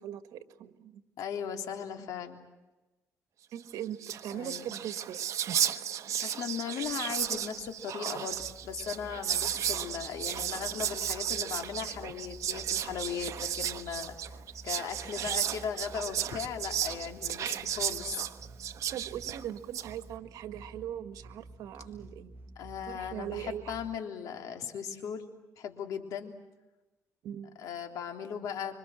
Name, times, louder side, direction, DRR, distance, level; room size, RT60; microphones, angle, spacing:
voice 1, 0.0-1.0 3.5-5.3 18.9-22.3 22.9-23.7 27.2-27.7, right 10 dB, 85° right, 9 dB, 1.7 m, -40 dB
voice 2, 1.2-2.5 4.3-4.8 5.7-5.8 6.2-14.4 14.6-18.2 22.5-25.3 25.6-26.4 27.6-28.7, left 7 dB, 80° left, 4 dB, 3.3 m, -38 dB
Whispering, 3.7-3.8 3.9-19.9, right 10 dB, 60° right, 1.2 m, -34 dB
sound 1, 8.3-24.0, right 2 dB, 35° right, 1.4 m, -51 dB
26.5 x 25.0 x 7.7 m, 1.1 s
cardioid pair, 120°, 6 cm